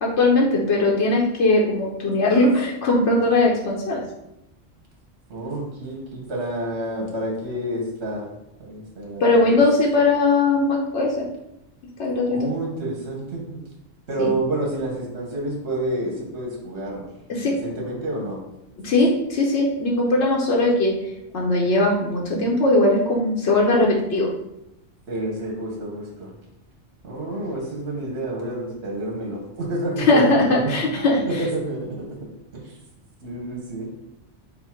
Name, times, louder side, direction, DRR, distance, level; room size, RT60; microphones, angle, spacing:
voice 1, 0.0-4.0 9.2-11.3 12.0-12.5 14.2-14.3 17.3-17.6 18.8-20.9 21.3-24.3 30.1-31.4, left 2 dB, 85° left, -2 dB, 1.0 m, -19 dB
voice 2, 5.3-8.3 8.6-9.2 9.5-9.6 12.3-13.6 14.1-17.0 17.4-18.4 25.1-26.3 27.0-32.1 32.5-32.7 33.2-33.9, right 1 dB, 70° right, -1 dB, 1.2 m, -29 dB
5.6 x 2.1 x 4.3 m, 0.85 s
omnidirectional pair, 1.1 m